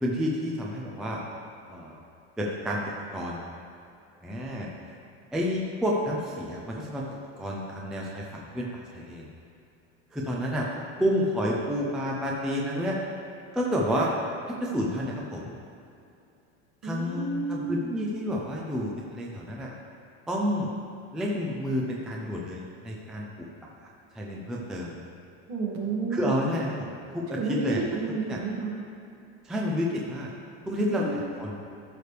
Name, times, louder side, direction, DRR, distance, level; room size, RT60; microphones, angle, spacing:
voice 1, 0.0-1.2 1.7-2.0 2.4-2.8 3.1-3.4 4.2-5.0 5.3-7.0 7.4-9.3 10.1-10.7 11.0-13.0 13.5-14.1 14.5-15.5 16.8-19.7 20.3-20.7 21.1-23.5 24.1-24.9 26.1-27.8 28.3-28.4 29.4-30.3 30.7-31.5, equal, ahead, -3 dB, 0.3 m, -30 dB
voice 2, 16.8-18.0 25.5-26.3 27.3-28.8 30.9-31.3, right 3 dB, 50° right, -3 dB, 2.1 m, -31 dB
13.5 x 6.7 x 3.3 m, 2.6 s
cardioid pair, 170°, 33 cm